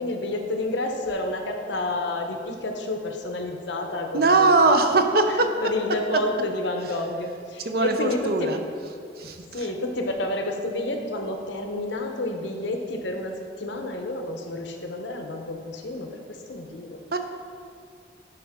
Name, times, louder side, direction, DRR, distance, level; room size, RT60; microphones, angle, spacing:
voice 1, 0.0-4.8 5.3-8.5 9.2-17.0, left 2 dB, 80° left, 4 dB, 0.8 m, -30 dB
voice 2, 4.1-5.5 7.7-8.6 9.2-9.4 17.1-17.2, right 3 dB, 55° right, 6 dB, 0.6 m, -20 dB
10.0 x 4.7 x 3.6 m, 2.3 s
head